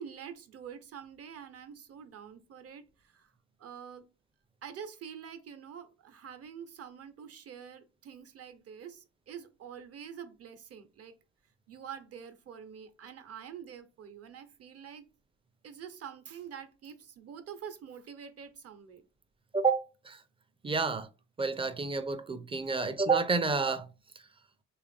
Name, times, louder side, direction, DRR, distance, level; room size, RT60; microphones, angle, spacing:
voice 1, 0.0-3.3 3.6-4.1 4.6-11.1 11.7-15.1 15.6-19.0, right 8 dB, 55° right, 0.7 m, -46 dB
voice 2, 19.5-20.2 20.6-21.1 21.4-23.9, right 4 dB, 20° right, 0.4 m, -29 dB
3.3 x 2.4 x 3.3 m
cardioid pair, 90°, 30 cm